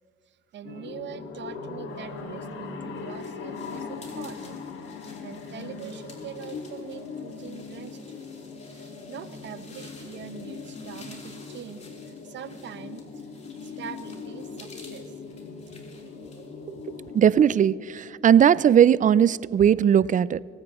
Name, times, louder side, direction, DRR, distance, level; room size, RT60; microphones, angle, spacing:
voice 1, 0.3-4.6 5.2-8.0 8.7-11.8 12.0-13.3 13.6-15.1, right 9 dB, 65° right, 0.8 m, -43 dB
sound 1, 0.6-17.6, left 5 dB, 80° left, 1.9 m, -40 dB
sound 2, 2.3-17.5, left 3 dB, 35° left, 3.3 m, -53 dB
voice 2, 17.1-20.4, right 9 dB, 40° right, 0.4 m, -18 dB
26.0 x 15.0 x 3.0 m
cardioid pair, 90°, 20 cm